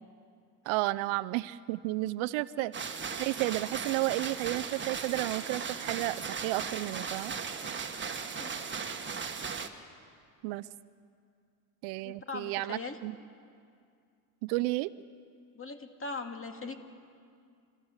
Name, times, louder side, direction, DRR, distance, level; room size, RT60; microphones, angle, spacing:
voice 1, 0.6-2.7 3.2-7.3 10.4-10.7 11.8-13.2 14.4-14.9, right 19 dB, 70° right, 17 dB, 0.7 m, -32 dB
sound 1, 2.7-9.7, right 5 dB, 20° right, 1.7 m, -37 dB
voice 2, 12.0-13.0 15.5-16.8, left 4 dB, 25° left, 5 dB, 2.3 m, -40 dB
29.5 x 14.0 x 8.1 m, 2.3 s
supercardioid pair, 95°, 50 cm